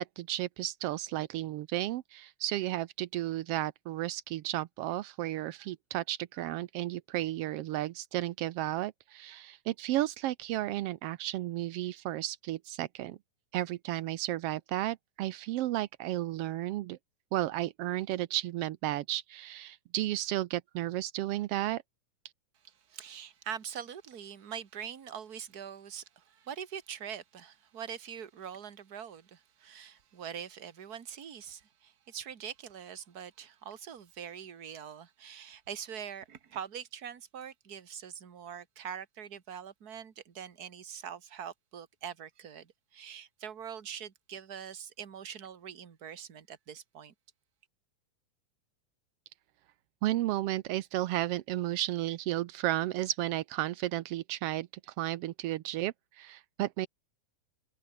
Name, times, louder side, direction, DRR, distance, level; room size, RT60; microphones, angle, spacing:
voice 1, 0.0-13.2 13.5-17.0 17.3-21.8 50.0-56.9, right 15 dB, 90° right, 1.3 m, -33 dB
voice 2, 22.6-47.1, right 8 dB, 40° right, 1.7 m, -43 dB
omnidirectional pair, 3.6 m